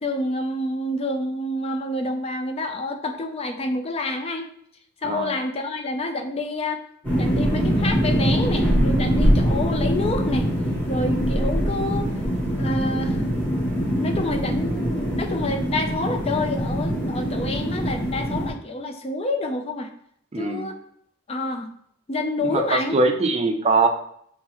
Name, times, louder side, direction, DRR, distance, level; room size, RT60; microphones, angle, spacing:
voice 1, 0.0-4.5 5.0-6.8 7.1-10.5 10.9-12.1 12.6-13.2 14.0-19.9 20.4-20.8 21.3-21.7 22.1-23.0, left 2 dB, 30° left, 6 dB, 0.4 m, -28 dB
sound 1, 7.0-18.5, equal, 10° left, 1.5 m, -23 dB
voice 2, 20.3-20.7 22.4-23.9, right 3 dB, 30° right, 5 dB, 0.5 m, -22 dB
3.9 x 3.8 x 3.0 m, 0.68 s
head